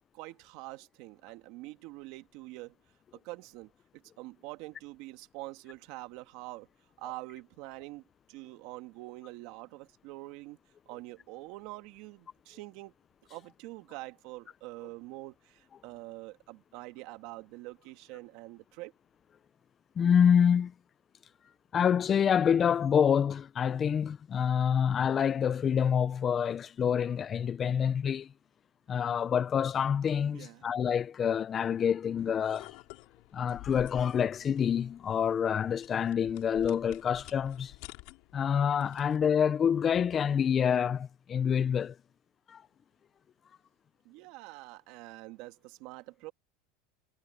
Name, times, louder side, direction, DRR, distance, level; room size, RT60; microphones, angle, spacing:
voice 1, 0.1-2.8 3.1-6.7 7.0-10.6 10.9-12.9 13.3-18.9 30.3-30.7 44.1-46.3, right 20 dB, 50° right, 1.8 m, -45 dB
voice 2, 20.0-20.7 21.7-28.3 28.9-32.7 33.3-37.7 38.3-42.0 42.5-42.6, left 8 dB, 25° left, 0.5 m, -27 dB
sound 1, 32.2-39.3, left 27 dB, 55° left, 3.7 m, -51 dB
supercardioid pair, 160°, 0 cm